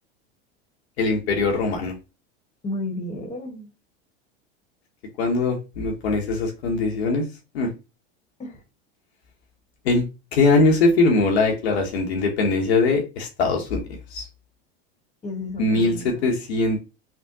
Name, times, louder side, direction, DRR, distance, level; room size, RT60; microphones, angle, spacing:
voice 1, 1.0-1.9 5.2-7.3 7.5-7.7 9.8-13.8 14.1-14.2 15.6-16.8, left 3 dB, 75° left, 1 dB, 0.9 m, -21 dB
voice 2, 2.6-3.7 8.4-8.6 15.2-16.3, left 2 dB, 20° left, 4 dB, 1.2 m, -32 dB
3.4 x 2.2 x 2.7 m, 0.28 s
hypercardioid pair, 90°, 32 cm